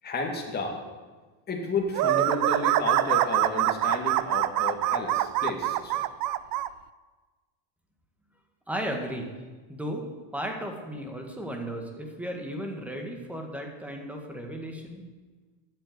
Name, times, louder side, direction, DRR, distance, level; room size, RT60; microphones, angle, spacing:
voice 1, 0.0-0.8 1.5-5.9, left 3 dB, 20° left, 0 dB, 2.1 m, -32 dB
sound 1, 1.9-6.7, right 14 dB, 45° right, 0.5 m, -25 dB
voice 2, 8.7-9.3 9.7-10.0 10.3-15.0, equal, 5° right, 2 dB, 1.7 m, -35 dB
12.5 x 8.1 x 8.0 m, 1.3 s
cardioid pair, 150°, 46 cm